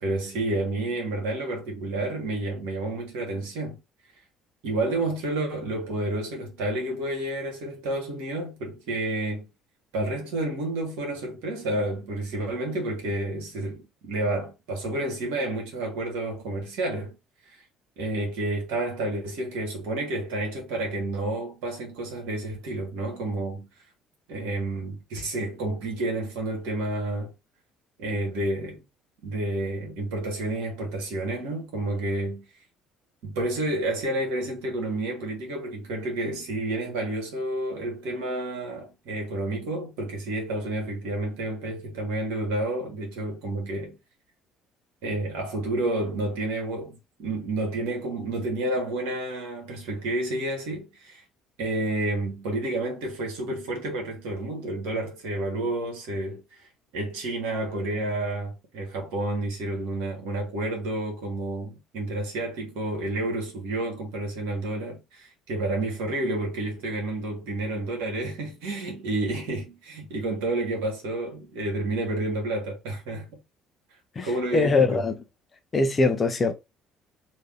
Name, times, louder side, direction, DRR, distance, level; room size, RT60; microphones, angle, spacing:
voice 1, 0.0-3.8 4.6-9.5 9.9-17.2 17.4-17.6 18.0-23.7 24.3-27.3 28.0-28.8 29.2-32.4 33.2-43.9 45.0-51.2 51.6-56.7 56.9-73.4 74.2-75.0, right 2 dB, 60° right, 1.4 m, -30 dB
voice 2, 74.5-75.1 75.7-76.5, left 3 dB, 30° left, 0.6 m, -22 dB
3.3 x 2.8 x 3.3 m
figure-of-eight pair, 55°, 0 cm